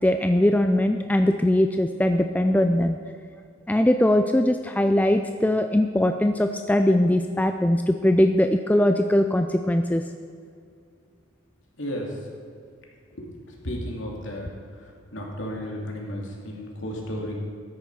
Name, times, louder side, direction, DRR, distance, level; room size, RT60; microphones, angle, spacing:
voice 1, 0.0-3.0 3.7-10.0, left 1 dB, 5° left, 6 dB, 0.3 m, -21 dB
voice 2, 11.8-12.1 13.2-13.3 13.6-14.6 15.1-17.4, equal, 65° left, -1 dB, 2.6 m, -33 dB
13.5 x 10.0 x 4.8 m, 2.2 s
head